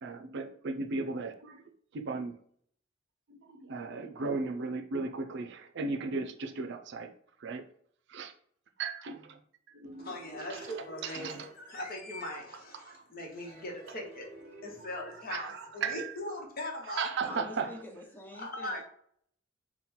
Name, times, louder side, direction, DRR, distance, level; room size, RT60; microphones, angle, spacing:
voice 1, 0.0-2.3 3.3-7.1 7.4-7.6 8.1-8.3 8.8-9.4 9.7-10.1 10.5-10.7 11.0-11.5 12.7-13.0 15.1-16.1 16.9-17.8, right 4 dB, 60° right, 0.5 m, -36 dB
sound 1, 9.9-12.7 13.4-16.2, right 2 dB, 40° right, 0.9 m, -53 dB
voice 2, 10.0-14.3 14.6-17.4 18.4-18.8, left 1 dB, 50° left, 1.0 m, -40 dB
voice 3, 17.2-18.8, left 1 dB, 10° left, 0.8 m, -46 dB
3.7 x 2.3 x 4.2 m
head